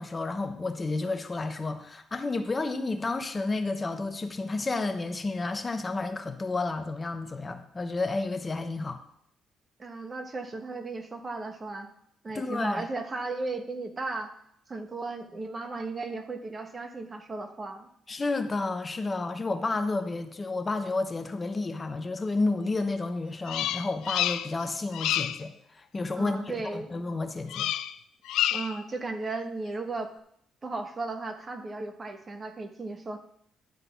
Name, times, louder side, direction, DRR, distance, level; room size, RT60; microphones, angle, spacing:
voice 1, 0.0-9.0 12.3-12.8 18.1-27.7, left 3 dB, 30° left, 8 dB, 0.8 m, -31 dB
voice 2, 9.8-11.9 12.2-14.3 14.7-17.9 26.1-27.0 28.5-30.1 30.6-33.2, right 3 dB, 35° right, 6 dB, 1.1 m, -35 dB
Bird vocalization bird call bird song, 23.5-24.6 24.9-25.4 27.5-28.0 28.3-28.8, left 12 dB, 90° left, 0.3 m, -29 dB
11.0 x 4.1 x 6.9 m, 0.71 s
cardioid pair, 90°, 0 cm